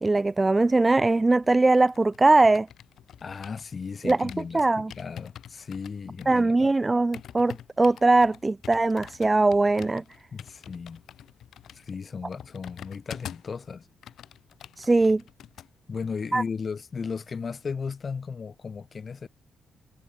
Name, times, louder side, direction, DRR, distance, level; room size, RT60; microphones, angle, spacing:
voice 1, 0.0-2.7 4.0-4.9 6.3-10.0 14.8-15.2 16.3-16.4, right 2 dB, 15° right, 0.3 m, -21 dB
sound 1, 1.4-3.7 4.1-13.6 13.9-15.7 16.0-16.2, left 10 dB, 70° left, 4.7 m, -46 dB
voice 2, 3.2-6.7 10.3-11.0 11.7-13.9 15.9-19.3, left 5 dB, 35° left, 1.8 m, -35 dB
cardioid pair, 140°, 0 cm